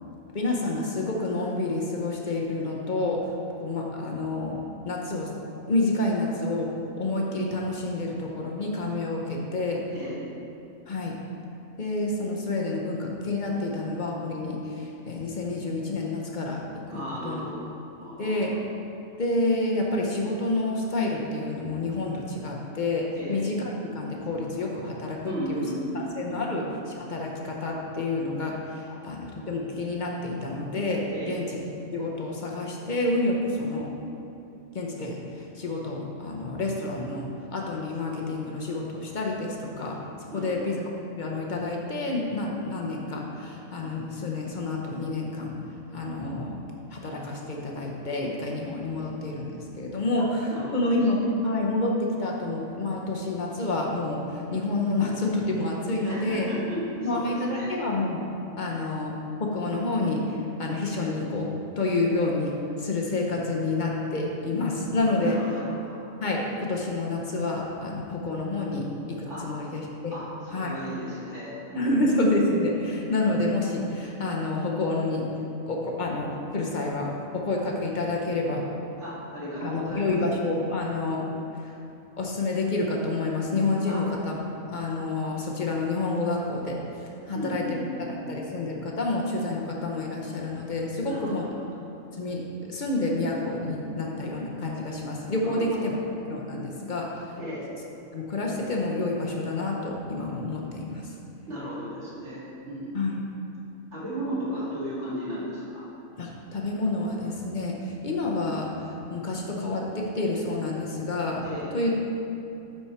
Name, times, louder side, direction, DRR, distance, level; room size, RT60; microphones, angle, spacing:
voice 1, 0.3-5.3 5.7-9.8 10.9-11.2 11.8-16.6 16.9-17.4 18.2-18.6 19.2-25.6 26.2-26.7 27.0-31.5 31.9-33.9 34.7-40.8 41.2-45.6 45.9-46.6 46.9-56.5 57.0-58.3 58.6-61.5 61.8-65.4 66.2-70.1 70.5-70.8 71.8-75.3 75.7-78.6 79.6-81.2 81.5-81.8 82.2-84.4 84.7-87.8 88.3-91.5 92.1-96.0 96.3-97.3 98.1-101.1 102.9-103.2 106.2-111.4 111.7-111.9, left 2 dB, 45° left, -1 dB, 0.8 m, -29 dB
voice 2, 16.9-17.7 18.0-18.3 23.2-23.4 25.2-26.6 31.1-31.4 40.3-40.8 50.2-50.3 50.5-50.9 56.0-57.7 58.6-58.8 65.2-66.0 69.3-69.5 70.1-72.0 79.0-80.4 83.8-84.0 87.3-88.3 91.0-91.6 95.4-95.8 97.4-97.6 101.5-103.1 103.9-105.9 111.4-111.7, equal, 60° right, -8 dB, 2.3 m, -35 dB
9.1 x 4.3 x 4.4 m, 2.9 s
omnidirectional pair, 1.4 m